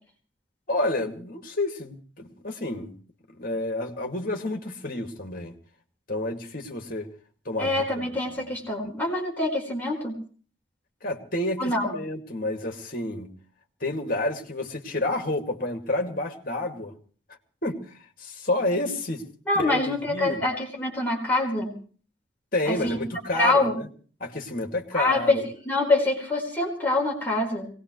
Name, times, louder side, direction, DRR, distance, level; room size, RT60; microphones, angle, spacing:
voice 1, 0.7-2.9 3.4-5.6 6.1-7.1 7.4-8.4 8.8-8.9 11.0-13.3 13.8-16.9 17.6-19.2 19.5-20.4 22.5-23.9 24.2-25.4, left 2 dB, 45° left, 2.3 m, -30 dB
voice 2, 7.6-10.1 11.6-11.9 19.5-21.7 22.7-23.0 23.3-23.8 24.9-25.4 25.6-27.7, left 2 dB, 10° left, 4.5 m, -25 dB
23.5 x 19.0 x 3.2 m
head